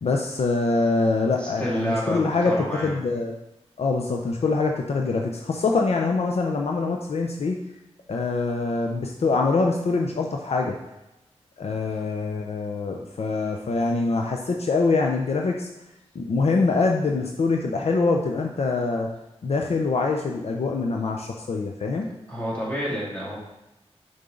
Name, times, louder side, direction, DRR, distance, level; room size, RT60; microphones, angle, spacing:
voice 1, 0.0-3.3 3.8-7.6 8.1-10.8 11.6-15.7 16.1-19.1 19.4-22.1, left 3 dB, 65° left, 1 dB, 0.7 m, -24 dB
voice 2, 1.4-2.9 22.3-23.4, equal, 10° left, -6 dB, 2.5 m, -29 dB
6.8 x 5.4 x 3.8 m, 0.94 s
wide cardioid pair, 125°, 11 cm